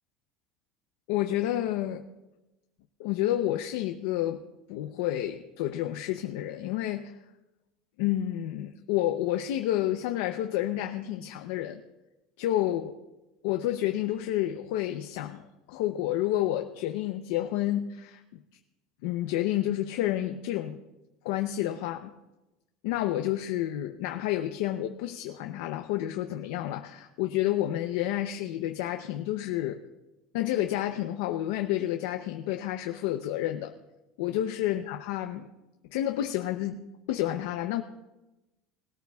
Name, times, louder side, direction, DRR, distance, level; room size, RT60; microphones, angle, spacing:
voice 1, 1.1-2.0 3.0-4.4 4.7-7.2 8.0-11.8 12.4-12.9 13.4-18.2 19.0-20.8 21.2-22.1 22.8-29.8 30.3-33.7 34.2-35.5 35.9-36.8 37.1-37.8, left 13 dB, 75° left, 6 dB, 0.6 m, -30 dB
20.5 x 13.5 x 2.4 m, 1.0 s
cardioid pair, 160°, 0 cm